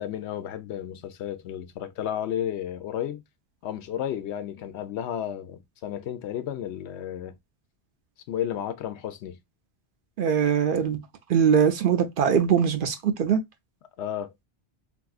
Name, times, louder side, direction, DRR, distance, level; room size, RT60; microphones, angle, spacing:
voice 1, 0.0-3.2 3.6-7.4 8.3-9.4 14.0-14.3, left 10 dB, 90° left, 0.9 m, -32 dB
voice 2, 10.2-11.0 11.3-13.4, right 7 dB, 60° right, 0.6 m, -22 dB
3.5 x 2.6 x 2.3 m
omnidirectional pair, 1.1 m